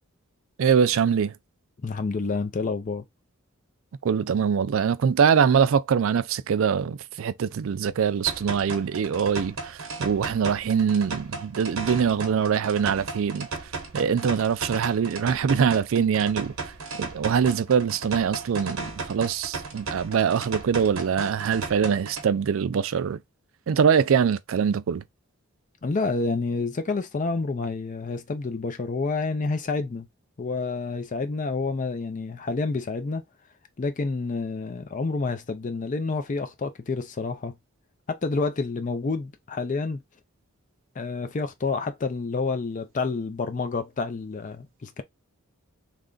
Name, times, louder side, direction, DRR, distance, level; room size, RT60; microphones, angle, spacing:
voice 1, 0.6-1.3 4.0-13.5 13.9-16.7 17.0-23.2 23.7-25.0, right 7 dB, 65° right, 0.4 m, -23 dB
voice 2, 1.8-3.0 25.8-30.1 30.4-33.2 33.8-37.6 38.1-40.0 41.0-45.0, left 3 dB, 35° left, 0.4 m, -29 dB
sound 1, 8.3-22.3, right 3 dB, 80° right, 0.9 m, -35 dB
3.3 x 2.5 x 3.7 m
head